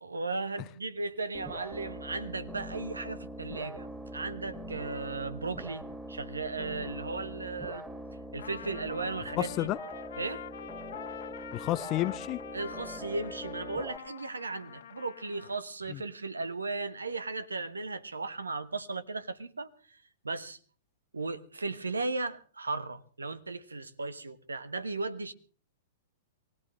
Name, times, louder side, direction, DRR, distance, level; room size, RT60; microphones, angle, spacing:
voice 1, 0.0-7.8 8.3-9.7 10.2-10.5 12.5-20.0 20.2-20.6 21.1-25.3, right 3 dB, 85° right, 1.2 m, -36 dB
sound 1, 1.3-14.0, right 1 dB, 5° right, 2.3 m, -43 dB
Trumpet, 8.4-15.6, left 9 dB, 65° left, 1.6 m, -45 dB
voice 2, 9.4-9.8 11.5-12.4 15.9-16.0, left 16 dB, 35° left, 0.7 m, -30 dB
23.5 x 18.0 x 3.2 m
hypercardioid pair, 110°, 0 cm